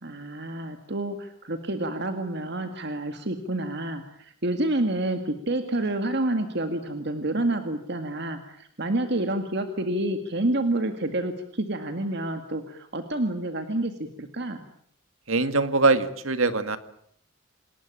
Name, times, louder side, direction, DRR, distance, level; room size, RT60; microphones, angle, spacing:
voice 1, 0.0-14.6, right 1 dB, 55° right, 7 dB, 2.0 m, -28 dB
voice 2, 15.3-16.8, right 3 dB, 75° right, 11 dB, 1.9 m, -22 dB
27.5 x 20.0 x 8.7 m, 0.66 s
head